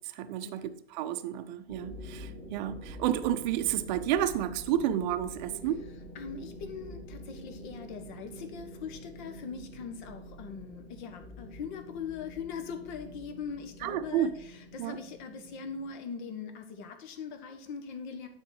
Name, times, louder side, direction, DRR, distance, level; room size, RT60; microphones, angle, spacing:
voice 1, 0.1-5.8 13.8-14.3 14.8-15.0, right 11 dB, 45° right, 10 dB, 0.7 m, -31 dB
sound 1, 1.7-15.9, equal, 15° left, 2.0 m, -46 dB
voice 2, 6.1-18.3, left 6 dB, 45° left, 7 dB, 1.4 m, -41 dB
9.5 x 4.4 x 4.9 m, 0.71 s
hypercardioid pair, 110°, 33 cm